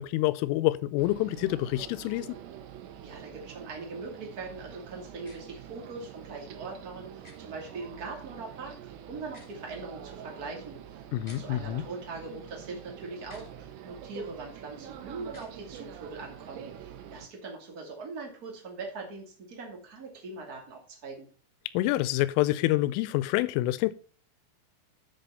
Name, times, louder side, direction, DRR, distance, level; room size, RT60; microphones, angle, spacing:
voice 1, 0.0-2.4 11.1-11.8 21.7-23.9, left 16 dB, 85° left, 3.1 m, -27 dB
sound 1, 1.0-17.3, right 9 dB, 85° right, 3.6 m, -46 dB
voice 2, 3.0-21.3, right 3 dB, 40° right, 1.3 m, -41 dB
sound 2, 5.2-5.4 7.2-7.4 9.2-9.6 11.2-11.4 13.2-13.5 15.2-15.5, left 1 dB, 40° left, 0.5 m, -52 dB
7.9 x 6.9 x 5.5 m
omnidirectional pair, 5.7 m